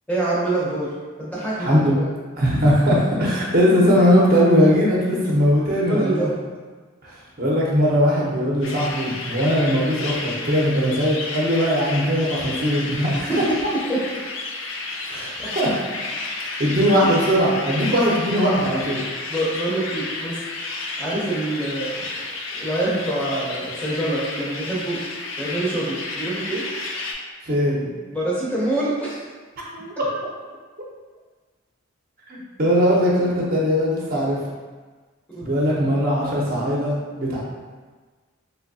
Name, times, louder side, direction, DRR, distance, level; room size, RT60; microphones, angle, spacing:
voice 1, 0.1-2.1 5.9-6.4 13.3-13.6 13.9-14.0 19.3-22.2 22.5-25.0 25.4-26.7 28.1-29.2 35.3-35.5, right 1 dB, 5° left, -7 dB, 0.5 m, -26 dB
voice 2, 1.6-1.9 2.4-6.3 7.0-13.3 15.1-15.8 16.4-19.0 27.4-27.9 29.7-30.2 32.3-34.4 35.4-37.4, equal, 45° right, -4 dB, 0.6 m, -20 dB
sound 1, 8.6-27.1, left 3 dB, 65° left, 0.4 m, -31 dB
3.3 x 2.6 x 2.6 m, 1.4 s
head